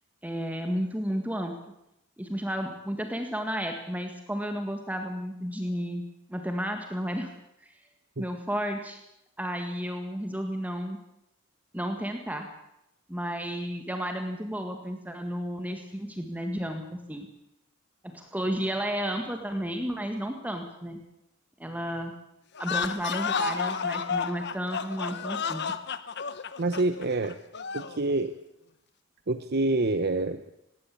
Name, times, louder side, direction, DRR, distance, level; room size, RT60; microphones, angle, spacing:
voice 1, 0.2-1.6 2.2-6.0 6.3-7.3 7.6-7.7 8.2-9.0 9.4-11.0 11.7-12.5 13.1-17.3 18.0-21.0 21.6-22.1 22.6-25.6, equal, 10° right, 4 dB, 1.8 m, -32 dB
sound 1, 22.5-28.0, left 6 dB, 55° left, 1.1 m, -31 dB
voice 2, 26.6-27.4 27.7-28.3 29.3-30.6, right 2 dB, 50° right, 10 dB, 0.9 m, -27 dB
19.0 x 18.0 x 8.6 m, 0.84 s
head